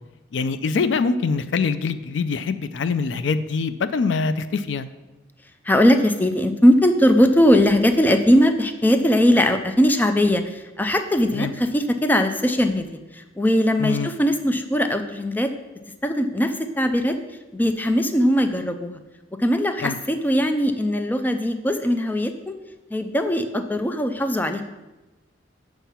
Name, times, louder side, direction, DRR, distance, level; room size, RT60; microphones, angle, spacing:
voice 1, 0.3-4.9 11.3-11.5 13.8-14.1 19.8-20.0, left 4 dB, 80° left, 13 dB, 0.4 m, -24 dB
voice 2, 5.6-15.5 16.0-17.2 17.5-19.0 19.4-22.5 22.9-24.6, equal, 10° left, 8 dB, 0.4 m, -20 dB
7.4 x 4.5 x 5.6 m, 1.0 s
head